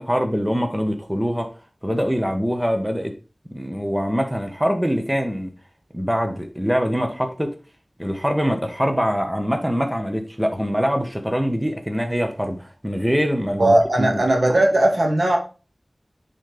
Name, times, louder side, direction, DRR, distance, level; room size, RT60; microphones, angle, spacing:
voice 1, 0.0-1.5 1.8-3.1 3.5-5.5 5.9-7.5 8.0-14.2, equal, 10° right, 1.4 m, -23 dB
voice 2, 13.6-15.4, right 1 dB, 75° right, 2.0 m, -17 dB
10.0 x 4.2 x 3.5 m
wide cardioid pair, 40°, 0 cm